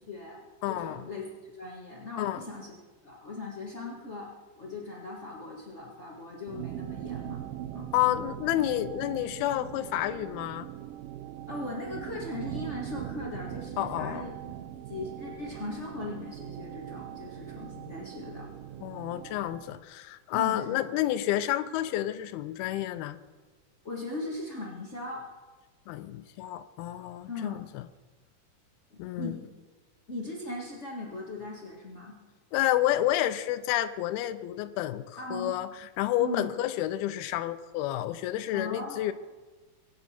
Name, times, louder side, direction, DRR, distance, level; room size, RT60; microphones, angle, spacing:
voice 1, 0.1-1.3 1.5-2.7 3.0-7.4 7.7-7.9 11.5-18.5 20.3-20.9 23.8-25.3 27.3-27.6 28.9-29.5 30.1-32.2 35.2-35.6 36.2-36.5 38.5-39.1, left 2 dB, 55° left, -4 dB, 0.7 m, -39 dB
voice 2, 0.6-1.0 2.2-2.4 7.9-10.7 13.8-14.3 18.8-23.2 25.9-27.8 29.0-29.4 32.5-39.1, left 13 dB, 85° left, 11 dB, 2.6 m, -30 dB
sound 1, 6.5-19.8, right 12 dB, 75° right, 2.3 m, -41 dB
23.5 x 9.4 x 4.4 m, 1.3 s
omnidirectional pair, 4.4 m